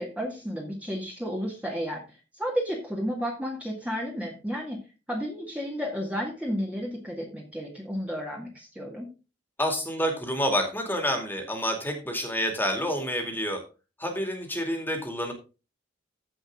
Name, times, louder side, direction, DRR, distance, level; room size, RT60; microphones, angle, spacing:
voice 1, 0.0-4.8 5.1-9.1, equal, 5° right, -2 dB, 2.0 m, -32 dB
voice 2, 9.6-13.6 14.0-15.3, equal, 10° left, 4 dB, 2.4 m, -28 dB
15.0 x 5.3 x 3.7 m, 0.30 s
head